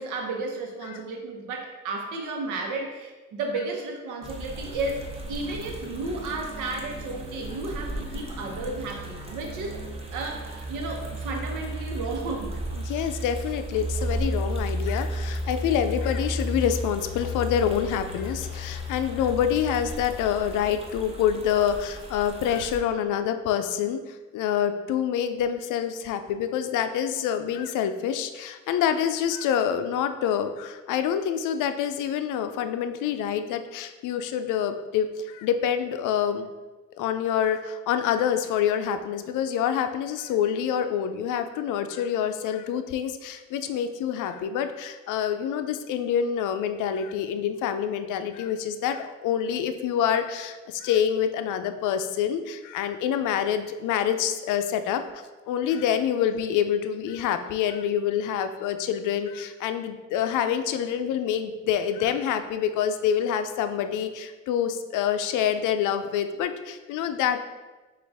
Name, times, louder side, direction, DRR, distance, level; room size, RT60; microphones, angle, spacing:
voice 1, 0.0-9.8 10.1-12.6, right 3 dB, 90° right, 2 dB, 0.9 m, -33 dB
sound 1, 4.2-22.8, equal, 20° right, 0.8 m, -34 dB
voice 2, 12.8-36.5 37.0-55.0 55.5-67.4, left 9 dB, 85° left, 8 dB, 0.5 m, -26 dB
6.3 x 2.5 x 3.4 m, 1.2 s
cardioid pair, 90°, 30 cm